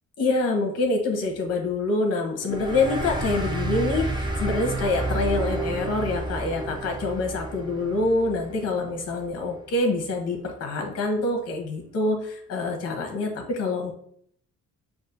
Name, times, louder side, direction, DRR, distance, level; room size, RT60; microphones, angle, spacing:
voice 1, 0.2-13.9, left 2 dB, 55° left, 2 dB, 1.0 m, -26 dB
sound 1, 2.4-9.5, right 2 dB, 15° right, 0.7 m, -31 dB
5.9 x 2.5 x 2.6 m, 0.65 s
cardioid pair, 90°, 30 cm